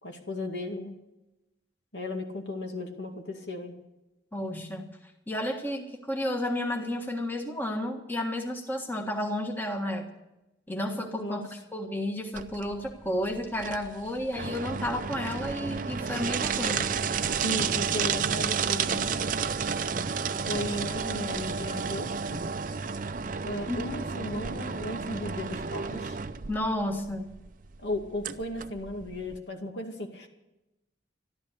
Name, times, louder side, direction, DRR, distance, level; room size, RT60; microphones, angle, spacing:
voice 1, 0.0-0.9 1.9-3.8 11.2-11.4 17.4-19.2 20.5-22.5 23.4-26.2 27.8-30.3, left 1 dB, 70° left, 3 dB, 2.3 m, -35 dB
voice 2, 4.3-5.0 5.3-10.1 10.7-16.9 23.7-23.8 26.5-27.3, left 1 dB, 10° left, 3 dB, 1.6 m, -32 dB
sound 1, 12.4-29.4, right 6 dB, 45° right, 0.6 m, -31 dB
14.0 x 12.5 x 8.3 m, 0.96 s
head